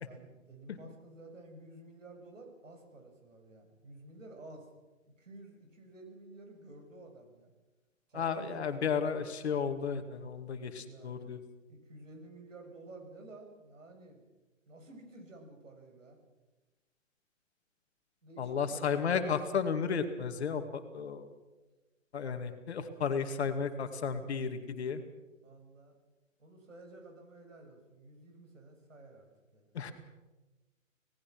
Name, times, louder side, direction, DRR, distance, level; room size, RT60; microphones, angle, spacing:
voice 1, 0.0-4.7 5.2-7.5 8.1-9.1 10.8-11.3 11.7-14.2 14.7-16.2 18.2-19.1 25.4-25.9 26.4-29.7, right 2 dB, 70° right, 3 dB, 6.8 m, -52 dB
voice 2, 8.1-11.4 18.4-21.3 22.1-25.0 29.7-29.9, left 6 dB, 55° left, 8 dB, 2.4 m, -33 dB
27.0 x 18.5 x 6.1 m, 1.1 s
figure-of-eight pair, 125°, 40 cm